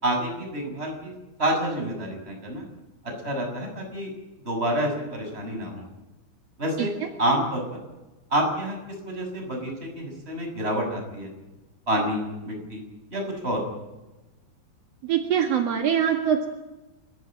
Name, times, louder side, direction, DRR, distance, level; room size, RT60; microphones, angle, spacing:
voice 1, 0.0-1.1 1.4-2.6 3.2-4.1 4.4-5.8 6.6-6.9 7.2-7.6 8.3-8.8 9.0-11.3 11.9-12.8 13.1-13.6, right 1 dB, 10° right, 2 dB, 6.7 m, -28 dB
voice 2, 15.0-16.5, right 8 dB, 60° right, 4 dB, 1.7 m, -23 dB
30.0 x 15.0 x 9.0 m, 1.1 s
omnidirectional pair, 5.4 m